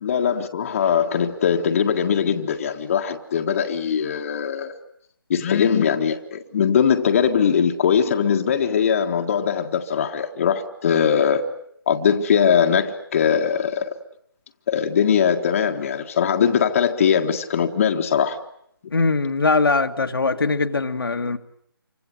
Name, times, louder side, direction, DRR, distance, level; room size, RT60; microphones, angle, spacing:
voice 1, 0.0-4.8 5.3-11.4 11.9-13.9 14.7-18.4, left 7 dB, 35° left, 1.7 m, -21 dB
voice 2, 18.9-21.4, left 3 dB, 70° left, 2.0 m, -21 dB
28.0 x 25.0 x 7.8 m
figure-of-eight pair, 155°, 12 cm